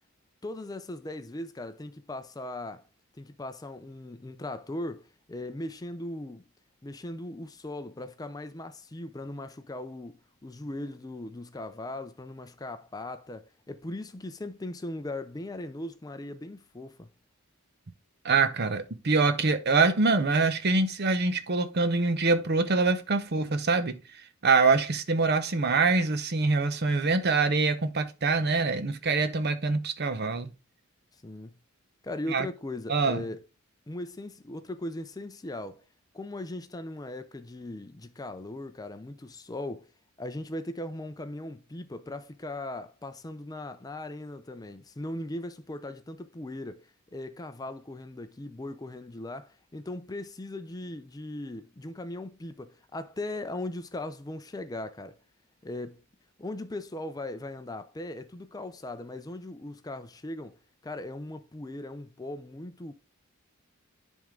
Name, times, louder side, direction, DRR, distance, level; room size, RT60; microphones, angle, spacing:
voice 1, 0.4-2.9 3.2-6.4 6.8-17.1 31.1-31.6 32.0-33.4 33.9-35.8 36.1-39.9 40.2-55.2 55.6-56.0 56.4-62.9, left 1 dB, 15° left, 0.4 m, -39 dB
voice 2, 18.2-24.0 24.4-30.5 32.3-32.5 32.9-33.3, right 3 dB, 50° right, 0.7 m, -25 dB
10.5 x 3.6 x 3.7 m
head